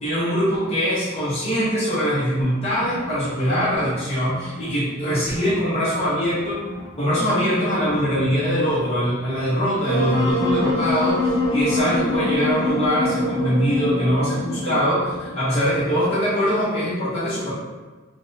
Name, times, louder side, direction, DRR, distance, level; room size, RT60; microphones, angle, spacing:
voice 1, 0.0-6.6 7.0-17.5, equal, 30° left, -10 dB, 0.7 m, -22 dB
sound 1, 2.4-4.7 5.0-7.1 7.4-8.9 9.7-15.4 15.6-15.8, left 1 dB, 65° left, 0.5 m, -38 dB
Wind instrument woodwind instrument, 9.9-15.0, left 1 dB, 85° right, 0.7 m, -23 dB
3.4 x 2.1 x 2.6 m, 1.3 s
head